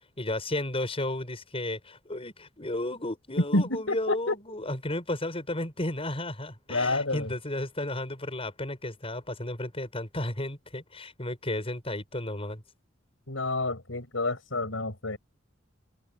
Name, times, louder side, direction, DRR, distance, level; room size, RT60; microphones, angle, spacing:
voice 1, 0.2-12.6, left 1 dB, 30° left, 7.0 m, -33 dB
voice 2, 3.5-4.3 6.7-7.3 13.3-15.2, left 2 dB, 85° left, 5.9 m, -29 dB
head